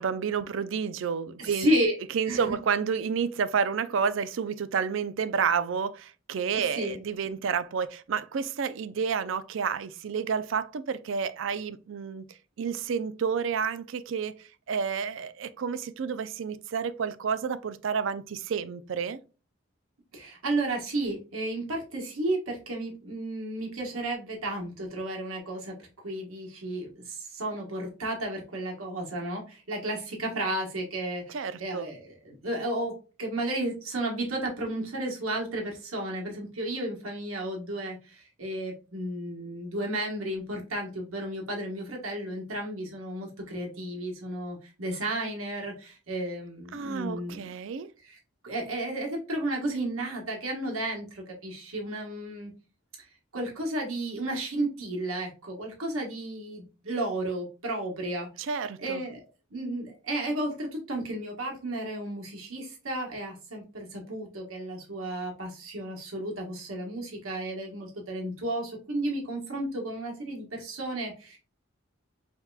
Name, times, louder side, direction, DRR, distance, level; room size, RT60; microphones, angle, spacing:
voice 1, 0.0-1.7 2.1-12.2 12.6-14.3 14.7-19.2 31.3-31.9 46.7-47.9 58.4-59.0, right 6 dB, 65° right, 0.4 m, -30 dB
voice 2, 1.4-2.0 2.3-2.6 6.5-7.0 20.1-25.7 26.0-32.9 33.2-47.4 48.0-48.2 48.4-52.5 53.0-53.1 53.3-58.5 58.8-59.2 59.5-71.4, right 1 dB, 85° right, 1.4 m, -33 dB
5.7 x 2.9 x 2.3 m
head